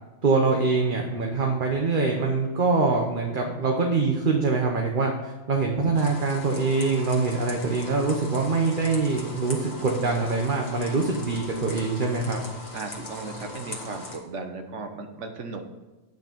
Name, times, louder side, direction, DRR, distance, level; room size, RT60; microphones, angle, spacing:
voice 1, 0.2-12.4, right 3 dB, 40° right, 1 dB, 1.1 m, -24 dB
sound 1, 5.9-14.2, left 1 dB, 35° left, 1.7 m, -39 dB
voice 2, 9.8-10.2 12.7-15.6, right 3 dB, 65° right, 6 dB, 1.4 m, -36 dB
9.1 x 5.9 x 5.2 m, 1.2 s
omnidirectional pair, 1.4 m